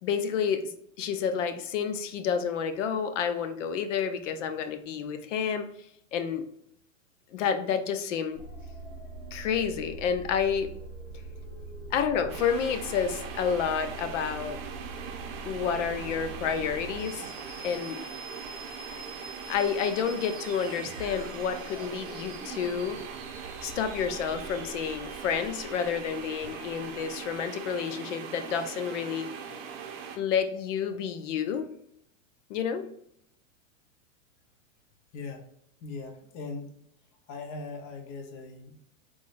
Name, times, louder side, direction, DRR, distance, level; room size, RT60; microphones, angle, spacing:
voice 1, 0.0-5.6 6.1-6.4 7.3-8.4 9.3-10.7 11.9-14.6 15.4-17.3 17.6-18.0 19.5-23.0 23.6-29.3 30.2-31.7 32.5-32.9, left 7 dB, 65° left, 9 dB, 0.6 m, -29 dB
sound 1, 8.3-27.7, right 2 dB, 5° right, 1.0 m, -44 dB
sound 2, 12.3-30.2, right 7 dB, 45° right, 0.7 m, -41 dB
voice 2, 35.1-35.4 35.8-36.7 37.3-38.8, left 3 dB, 30° left, 5 dB, 0.6 m, -39 dB
3.6 x 3.3 x 2.5 m, 0.70 s
supercardioid pair, 140°, 40 cm